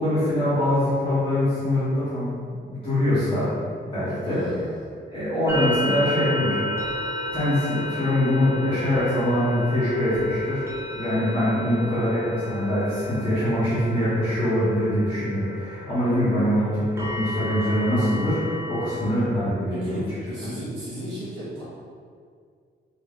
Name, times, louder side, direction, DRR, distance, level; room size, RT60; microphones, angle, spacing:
voice 1, 0.0-2.3 2.7-3.5 3.9-4.5 5.1-6.6 7.3-10.6 10.9-20.0, left 1 dB, 30° left, -14 dB, 1.0 m, -23 dB
voice 2, 4.2-5.0 19.7-21.6, equal, 70° right, -10 dB, 1.1 m, -35 dB
sound 1, 5.5-19.0, left 1 dB, 15° right, 0.5 m, -33 dB
2.9 x 2.6 x 3.5 m, 2.1 s
wide cardioid pair, 160°, 19 cm